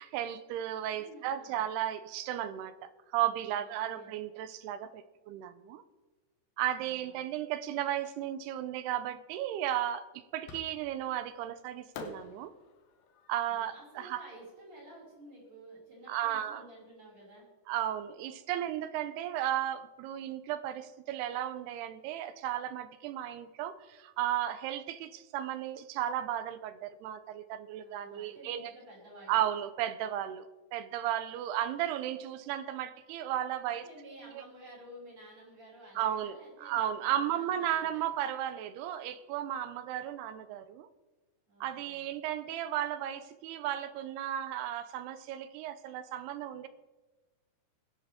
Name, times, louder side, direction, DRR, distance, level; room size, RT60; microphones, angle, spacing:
voice 1, 0.0-5.8 6.6-10.1 10.3-12.5 13.3-14.2 16.1-16.7 17.7-28.7 29.3-33.9 34.4-34.5 36.0-40.9 41.6-46.7, right 11 dB, 80° right, 12 dB, 2.5 m, -34 dB
voice 2, 0.8-1.6 3.5-4.2 6.8-7.3 13.5-17.5 27.8-29.5 33.7-38.0 41.5-42.1, right 1 dB, 30° right, -5 dB, 6.4 m, -52 dB
Fireworks, 10.5-11.1 11.9-15.1, left 5 dB, 70° left, 2.9 m, -49 dB
20.5 x 11.0 x 3.6 m, 1.2 s
omnidirectional pair, 5.0 m